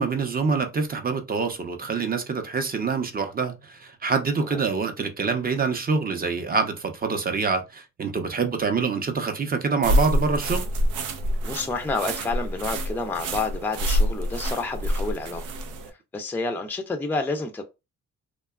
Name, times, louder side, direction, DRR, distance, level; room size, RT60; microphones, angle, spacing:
voice 1, 0.0-10.7, right 4 dB, 30° right, 0.7 m, -26 dB
sound 1, 9.8-15.9, equal, 90° right, 0.6 m, -26 dB
voice 2, 11.4-15.4 16.1-17.6, left 3 dB, 5° left, 0.4 m, -29 dB
2.8 x 2.2 x 2.3 m
cardioid pair, 90°, 30 cm